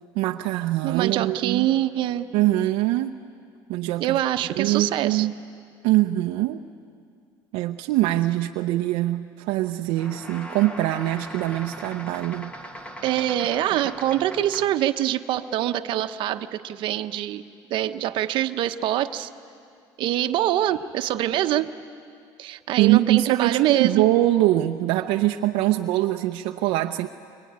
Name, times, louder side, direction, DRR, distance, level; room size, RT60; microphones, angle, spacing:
voice 1, 0.1-1.7 2.3-3.2 3.7-4.2 4.6-5.3 5.8-6.7 7.5-12.5 22.8-27.1, right 15 dB, 80° right, 4 dB, 0.8 m, -23 dB
voice 2, 0.8-2.3 4.0-5.3 13.0-17.4 17.7-19.3 20.0-21.7 22.4-24.0, right 12 dB, 65° right, 9 dB, 1.1 m, -24 dB
sound 1, 9.9-14.9, equal, 15° left, 1.9 m, -40 dB
24.5 x 24.0 x 9.6 m, 2.3 s
cardioid pair, 115°, 9 cm